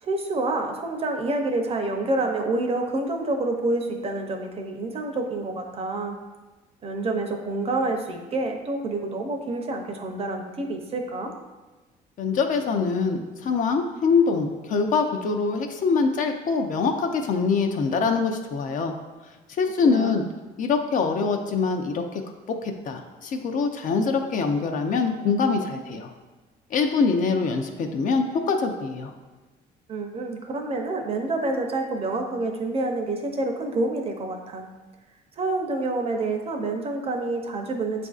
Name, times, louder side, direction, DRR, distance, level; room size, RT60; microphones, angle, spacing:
voice 1, 0.0-6.2 6.8-11.3 19.8-20.3 29.9-34.7 35.4-38.1, right 2 dB, 35° right, 4 dB, 0.6 m, -28 dB
voice 2, 12.2-18.9 19.6-20.2 20.6-22.2 22.6-26.1 26.7-29.1, left 4 dB, 50° left, 4 dB, 0.5 m, -24 dB
7.1 x 2.5 x 2.4 m, 1.2 s
cardioid pair, 110°, 17 cm